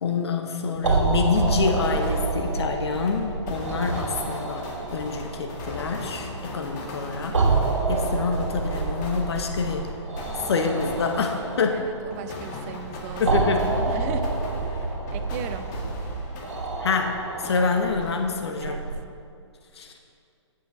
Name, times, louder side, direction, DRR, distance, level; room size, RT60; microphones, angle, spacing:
voice 1, 0.0-4.6 4.9-7.4 7.9-9.9 10.4-11.9 13.2-13.7 16.8-18.9 19.8-19.9, left 5 dB, 60° left, 4 dB, 1.0 m, -27 dB
sound 1, 0.7-18.9, right 3 dB, 80° right, 2.1 m, -28 dB
sound 2, 1.3-17.1 17.4-18.8, left 2 dB, 40° left, 1.9 m, -40 dB
voice 2, 11.7-14.4 14.7-15.7 18.6-18.8, right 7 dB, 30° right, 8 dB, 0.6 m, -38 dB
14.0 x 6.9 x 3.9 m, 2.4 s
figure-of-eight pair, 130°, 15 cm